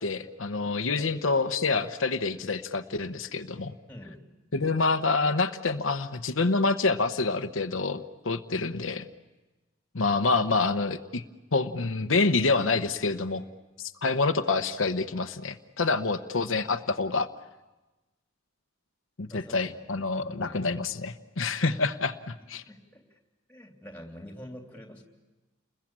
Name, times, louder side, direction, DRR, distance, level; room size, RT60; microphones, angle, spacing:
voice 1, 0.0-3.8 4.5-9.1 9.9-11.2 11.5-13.4 13.8-17.3 19.2-22.6, left 3 dB, 80° left, 6 dB, 0.9 m, -27 dB
voice 2, 3.9-4.2 19.3-19.9 20.2-20.6 22.4-23.2 23.5-25.0, equal, 10° left, 2 dB, 3.1 m, -47 dB
30.0 x 21.5 x 8.8 m, 1.1 s
head